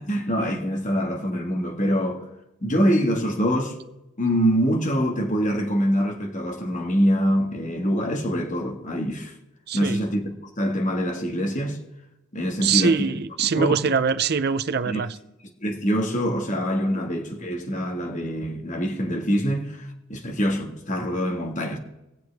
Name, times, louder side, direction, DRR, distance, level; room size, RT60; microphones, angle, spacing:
voice 1, 0.1-2.2 2.6-3.8 4.2-9.4 9.7-10.3 10.6-11.8 12.3-13.1 13.6-13.9 14.8-15.0 15.6-21.8, equal, 35° left, 1.8 m, -24 dB
voice 2, 9.7-10.0 12.6-15.2, right 6 dB, 50° right, 0.5 m, -23 dB
21.5 x 7.6 x 3.5 m
head